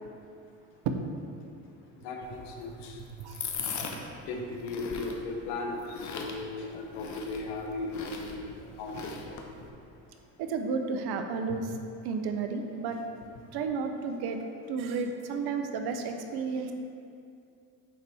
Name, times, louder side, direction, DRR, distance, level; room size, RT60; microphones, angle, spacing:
voice 1, 2.0-3.0 4.2-8.5 8.8-9.3, left 3 dB, 80° left, 1 dB, 1.0 m, -37 dB
sound 1, 2.2-9.7, left 5 dB, 45° left, 0.9 m, -41 dB
voice 2, 10.4-11.7 12.0-13.0 13.5-14.4 14.7-16.7, right 5 dB, 70° right, 6 dB, 0.8 m, -32 dB
9.6 x 4.1 x 3.5 m, 2.4 s
supercardioid pair, 75°, 40 cm